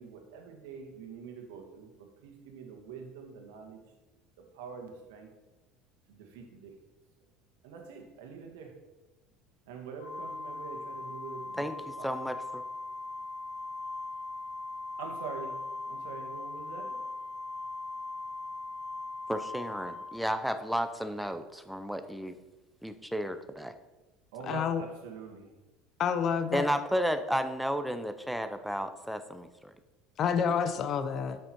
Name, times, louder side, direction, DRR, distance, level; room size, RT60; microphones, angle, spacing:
voice 1, 0.0-3.8 4.4-5.3 6.1-6.7 7.6-8.8 9.7-12.1 15.0-17.0 24.3-25.5, right 5 dB, 90° right, 3 dB, 1.8 m, -45 dB
Organ, 10.0-20.7, left 3 dB, 80° left, 1.9 m, -40 dB
voice 2, 12.0-12.6 19.3-22.4 22.8-23.7 26.5-29.7, equal, ahead, 9 dB, 0.6 m, -32 dB
voice 3, 24.5-24.8 26.0-26.7 30.2-31.4, left 7 dB, 45° left, 9 dB, 0.8 m, -28 dB
8.1 x 6.4 x 4.5 m, 1.1 s
supercardioid pair, 120°, 0 cm